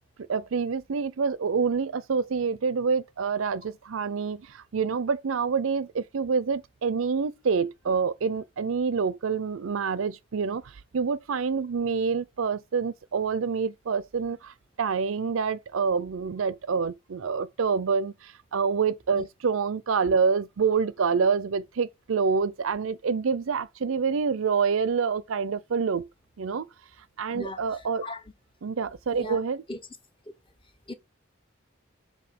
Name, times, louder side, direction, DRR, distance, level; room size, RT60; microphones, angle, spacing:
voice 1, 0.2-26.1 26.4-26.7 27.2-28.0 28.6-29.6, right 5 dB, 85° right, 0.5 m, -27 dB
voice 2, 19.1-19.2 27.3-27.6 28.0-28.2 29.1-29.4 29.7-29.8 30.9-31.0, left 1 dB, 25° left, 0.8 m, -36 dB
7.7 x 2.7 x 5.2 m
head